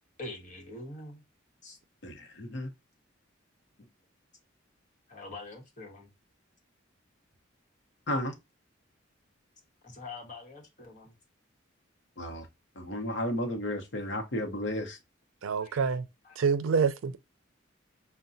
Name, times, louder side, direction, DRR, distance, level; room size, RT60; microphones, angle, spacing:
voice 1, 0.2-1.2 1.6-1.8 5.1-6.1 9.8-11.1 15.6-16.0 16.2-16.4, left 2 dB, 40° left, 1.2 m, -44 dB
voice 2, 2.0-2.7 8.1-8.3 12.2-12.5 12.8-15.0, left 1 dB, 65° left, 0.8 m, -33 dB
voice 3, 15.4-16.1 16.4-17.2, right 5 dB, 90° right, 0.4 m, -27 dB
5.6 x 2.2 x 2.6 m
head